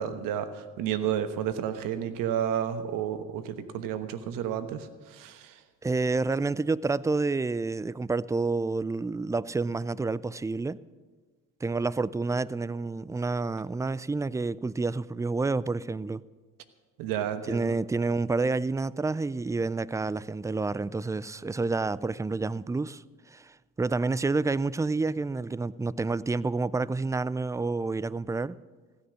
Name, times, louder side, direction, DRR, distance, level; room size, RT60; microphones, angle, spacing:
voice 1, 0.0-5.5 17.0-17.7, right 9 dB, 75° right, 1.2 m, -31 dB
voice 2, 5.8-10.8 11.6-16.2 17.5-23.0 23.3-28.6, right 3 dB, 10° right, 0.4 m, -29 dB
15.5 x 10.0 x 6.3 m
supercardioid pair, 65°, 33 cm